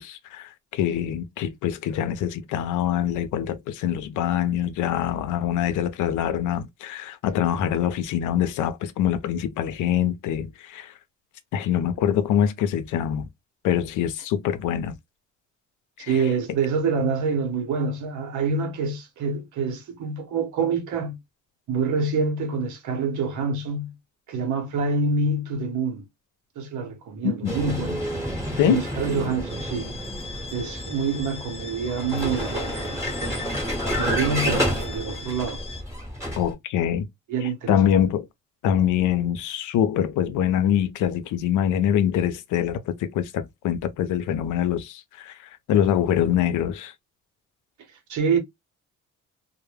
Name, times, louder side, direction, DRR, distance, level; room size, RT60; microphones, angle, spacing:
voice 1, 0.0-10.9 11.5-13.3 13.6-15.0 16.0-16.1 27.4-27.6 28.6-28.8 36.4-37.1 37.7-38.3 38.6-45.3 45.7-46.9, left 10 dB, 85° left, 0.5 m, -24 dB
voice 2, 16.1-21.2 21.7-23.9 24.3-26.0 26.6-28.0 28.7-29.9 30.5-33.6 34.0-35.6 37.3-38.0 48.1-48.4, right 4 dB, 75° right, 0.9 m, -26 dB
Vehicle, 27.4-36.5, equal, 10° right, 1.1 m, -30 dB
sound 1, 29.5-35.8, left 4 dB, 20° left, 0.4 m, -40 dB
2.1 x 2.1 x 3.0 m
cardioid pair, 90°, 30 cm